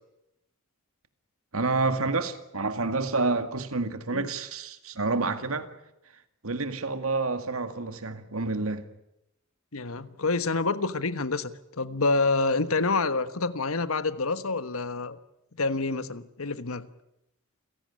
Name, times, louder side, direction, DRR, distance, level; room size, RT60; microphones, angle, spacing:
voice 1, 1.5-5.7 6.4-8.9, right 3 dB, 75° right, 2.0 m, -28 dB
voice 2, 9.7-15.2 15.6-16.9, left 3 dB, 75° left, 1.3 m, -27 dB
28.5 x 17.0 x 9.9 m
head